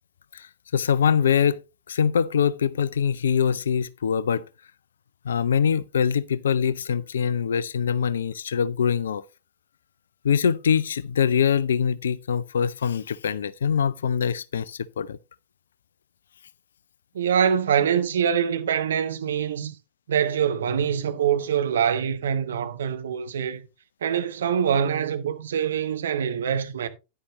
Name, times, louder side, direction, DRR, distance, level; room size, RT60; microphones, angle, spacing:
voice 1, 0.3-1.6 1.9-4.5 5.2-9.2 10.2-15.2, left 7 dB, 65° left, 0.5 m, -23 dB
voice 2, 17.1-19.7 20.1-23.6 24.0-26.9, right 8 dB, 65° right, 1.1 m, -24 dB
10.0 x 9.6 x 3.0 m
figure-of-eight pair, 90°, 0 cm